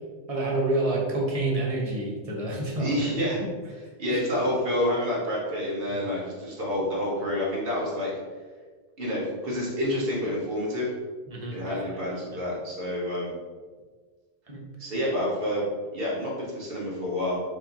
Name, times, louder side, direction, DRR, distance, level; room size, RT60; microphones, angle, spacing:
voice 1, 0.3-2.9 4.1-4.2 11.3-12.0 12.3-12.4 14.5-14.6, right 2 dB, 30° right, -2 dB, 0.9 m, -28 dB
voice 2, 2.8-3.4 4.0-8.1 9.0-10.9 11.5-13.3 14.8-15.6 15.9-17.4, left 1 dB, 50° right, -5 dB, 1.6 m, -28 dB
4.6 x 2.9 x 4.0 m, 1.5 s
omnidirectional pair, 1.3 m